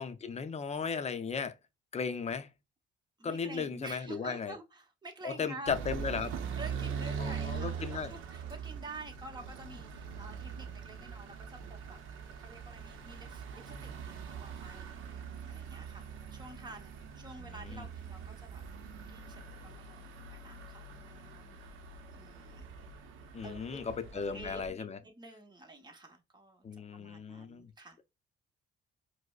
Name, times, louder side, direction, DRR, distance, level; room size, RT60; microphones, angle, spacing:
voice 1, 0.0-1.5 1.9-2.5 3.2-4.5 5.2-6.3 7.2-8.1 17.4-17.9 23.3-25.0 26.6-27.7, left 5 dB, 35° left, 0.5 m, -36 dB
voice 2, 3.2-5.7 6.5-18.6 19.1-20.0 20.3-21.6 22.1-22.7 23.4-23.8 24.1-28.0, right 2 dB, 20° right, 0.9 m, -49 dB
sound 1, 5.6-24.7, right 6 dB, 80° right, 0.6 m, -42 dB
4.7 x 2.0 x 2.3 m
cardioid pair, 90°, 20 cm